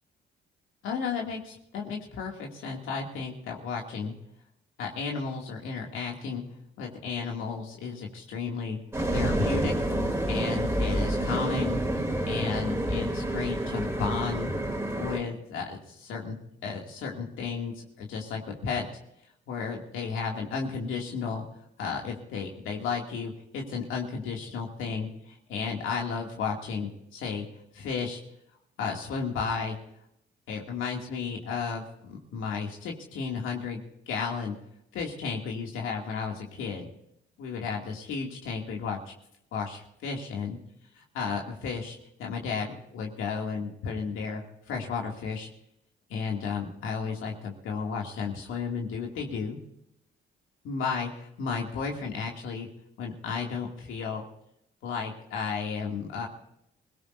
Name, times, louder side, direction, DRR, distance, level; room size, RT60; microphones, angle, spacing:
voice 1, 0.8-4.1 4.8-6.4 6.8-8.8 9.1-9.7 10.3-11.8 12.3-14.5 14.9-16.3 16.6-18.9 19.5-21.4 21.8-27.4 27.7-28.2 28.8-29.8 30.5-34.6 34.9-36.9 37.4-39.1 39.5-40.6 41.0-45.5 46.1-49.6 50.6-52.7 53.0-54.2 54.8-56.3, left 5 dB, 90° left, 0 dB, 2.6 m, -33 dB
sound 1, 8.9-15.2, right 1 dB, 10° right, 3.1 m, -28 dB
25.0 x 17.5 x 2.7 m, 0.76 s
cardioid pair, 90°, 20 cm